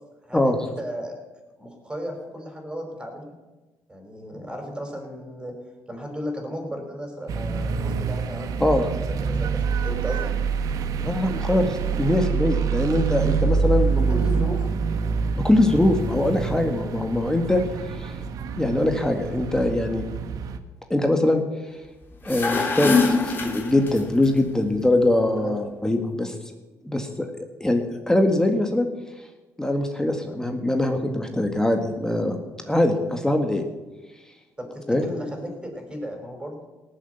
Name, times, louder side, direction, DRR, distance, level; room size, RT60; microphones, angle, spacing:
voice 1, 0.2-1.2 1.6-3.3 3.9-5.6 5.9-8.9 9.3-10.4 14.0-14.7 25.3-25.6 34.6-36.6, equal, 15° right, 2 dB, 5.6 m, -35 dB
sound 1, 7.3-20.6, right 5 dB, 70° right, 1.2 m, -26 dB
voice 2, 11.0-14.5 15.4-17.6 17.9-18.2 18.6-20.0 20.9-21.4 22.2-26.5 26.9-27.3 27.6-28.9 29.6-32.4 32.7-33.6 34.9-35.1, left 1 dB, 10° left, 5 dB, 1.9 m, -22 dB
sound 2, 22.1-24.3, left 4 dB, 35° left, 3.4 m, -23 dB
18.0 x 7.6 x 8.3 m, 1.1 s
cardioid pair, 90°, 6 cm